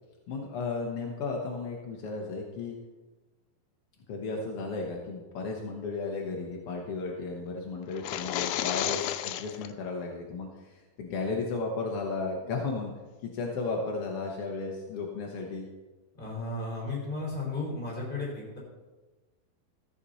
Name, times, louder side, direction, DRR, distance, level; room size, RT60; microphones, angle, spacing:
voice 1, 0.3-2.8 4.1-12.9 13.2-15.7, left 4 dB, 75° left, 0 dB, 1.3 m, -34 dB
sound 1, 7.9-9.7, left 12 dB, 90° left, 2.4 m, -32 dB
voice 2, 16.1-18.6, left 2 dB, 15° left, -5 dB, 4.5 m, -34 dB
14.0 x 8.2 x 4.1 m, 1.2 s
omnidirectional pair, 4.1 m